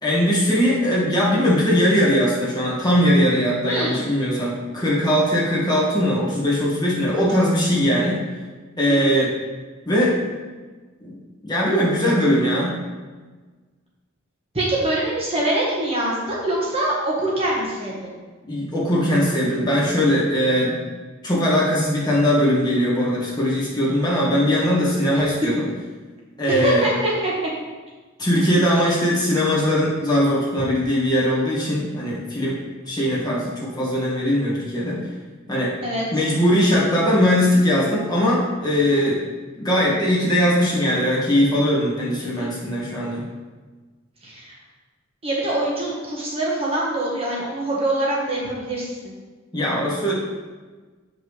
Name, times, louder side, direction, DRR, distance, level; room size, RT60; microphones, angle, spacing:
voice 1, 0.0-8.2 8.8-9.3 9.8-10.2 11.0-11.1 11.4-12.8 18.4-20.8 21.2-25.7 26.4-26.9 28.2-35.1 35.5-35.7 36.1-39.2 39.6-43.2 49.5-50.1, equal, 20° left, -6 dB, 1.7 m, -20 dB
voice 2, 3.6-4.1 8.9-9.0 14.5-18.1 26.6-27.3 35.8-36.0 42.2-42.5 44.2-44.6 45.2-49.1, right 1 dB, 30° right, -4 dB, 1.3 m, -24 dB
7.6 x 5.4 x 3.2 m, 1.3 s
head